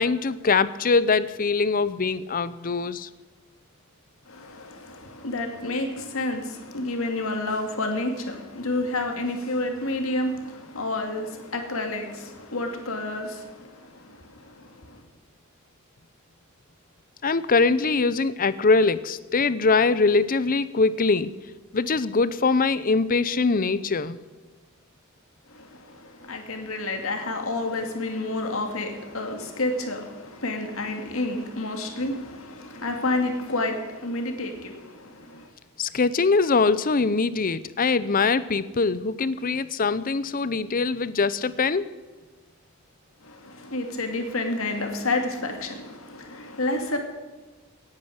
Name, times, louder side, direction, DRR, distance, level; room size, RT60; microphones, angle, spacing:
voice 1, 0.0-3.1 17.2-21.3 21.7-24.2 35.8-41.9, left 4 dB, 40° left, 0.6 m, -22 dB
voice 2, 4.3-15.0 25.5-35.5 43.2-47.0, left 2 dB, 75° left, 2.3 m, -30 dB
17.5 x 9.8 x 6.5 m
head